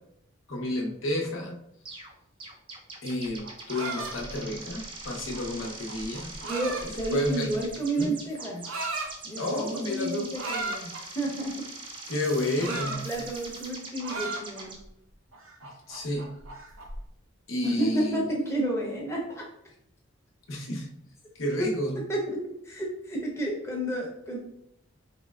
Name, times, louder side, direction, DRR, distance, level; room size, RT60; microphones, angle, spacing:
voice 1, 0.5-1.6 3.0-6.3 7.1-7.6 8.0-8.2 9.4-10.3 12.1-13.1 15.9-16.3 17.5-18.3 20.5-20.9 21.3-22.0, left 1 dB, 75° left, 0 dB, 0.8 m, -30 dB
sound 1, 1.9-2.1 2.4-14.8, right 3 dB, 25° right, 0.5 m, -42 dB
sound 2, 3.4-7.7 8.4-9.1 10.3-11.0 12.2-13.7 14.0-14.9 15.3-17.0, right 3 dB, 75° right, 0.6 m, -37 dB
voice 2, 6.4-8.7 9.2-11.7 12.6-14.8 17.6-19.5 21.6-21.7 22.0-24.4, right 1 dB, 15° left, -2 dB, 0.7 m, -31 dB
4.4 x 3.1 x 2.3 m, 0.76 s
head